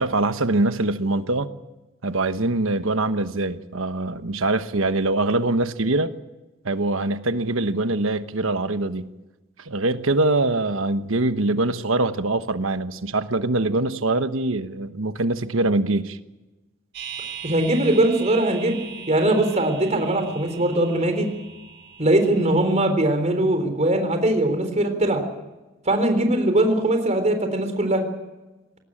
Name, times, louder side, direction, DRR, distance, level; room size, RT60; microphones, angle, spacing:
voice 1, 0.0-1.5 2.0-6.1 6.6-9.1 9.6-16.2, right 2 dB, 90° right, 10 dB, 1.2 m, -23 dB
sound 1, 16.9-22.9, right 7 dB, 60° right, 4.3 m, -39 dB
voice 2, 17.4-18.8 19.1-21.3 22.0-25.3 25.9-28.0, right 1 dB, 35° right, 6 dB, 3.8 m, -21 dB
21.0 x 18.5 x 8.8 m, 1.1 s
head